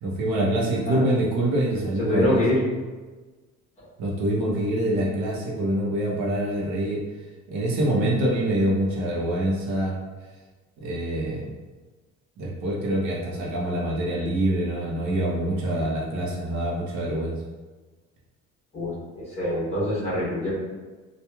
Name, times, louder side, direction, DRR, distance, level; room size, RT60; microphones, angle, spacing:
voice 1, 0.0-2.4 4.0-7.0 7.5-10.0 10.8-11.5 12.4-17.4, right 1 dB, 80° right, -3 dB, 0.7 m, -25 dB
voice 2, 2.0-2.7 18.7-20.5, left 1 dB, 20° left, -9 dB, 0.9 m, -25 dB
2.9 x 2.3 x 2.3 m, 1.3 s
cardioid pair, 180°, 29 cm